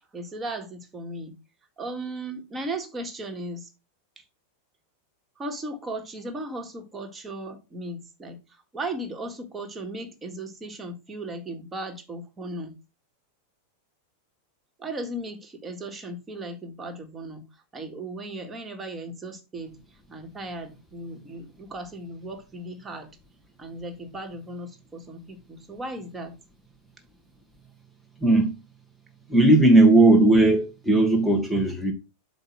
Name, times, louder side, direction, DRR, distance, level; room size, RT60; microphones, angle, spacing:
voice 1, 0.0-1.3 1.8-3.7 4.2-4.3 5.4-8.4 8.7-12.7 14.8-17.4 17.7-19.7 20.1-23.1 23.6-26.3, right 1 dB, 20° right, 1.8 m, -36 dB
voice 2, 28.2-28.5 29.3-31.9, right 2 dB, ahead, 1.4 m, -17 dB
8.1 x 2.7 x 6.0 m
hypercardioid pair, 105°, 0 cm